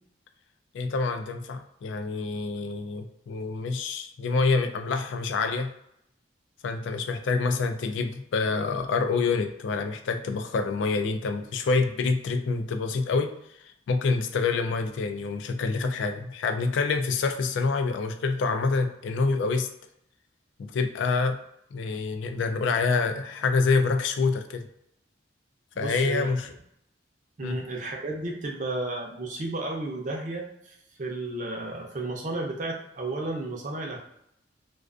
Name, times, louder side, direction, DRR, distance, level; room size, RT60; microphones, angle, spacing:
voice 1, 0.7-5.7 6.6-13.3 13.6-19.7 20.6-21.4 21.7-24.7 25.8-26.5 27.4-27.6, left 4 dB, 85° left, 7 dB, 0.3 m, -27 dB
voice 2, 25.7-26.3 27.4-34.0, right 2 dB, 40° right, 0 dB, 0.5 m, -33 dB
2.3 x 2.3 x 2.4 m, 0.76 s
head